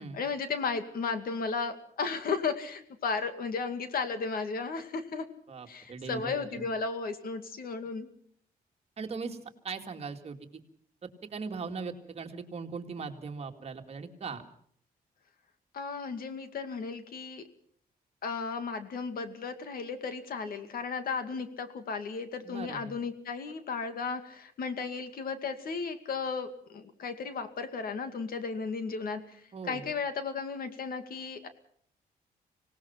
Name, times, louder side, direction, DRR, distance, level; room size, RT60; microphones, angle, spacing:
voice 1, 0.0-5.3 5.7-8.1 15.7-17.4 18.2-31.5, left 5 dB, 65° left, 9 dB, 2.3 m, -34 dB
voice 2, 5.5-6.7 9.0-9.4 9.6-10.4 11.2-14.4 22.4-23.0 29.5-29.9, right 4 dB, 40° right, 4 dB, 2.3 m, -39 dB
26.0 x 18.5 x 5.9 m, 0.63 s
wide cardioid pair, 145°, 16 cm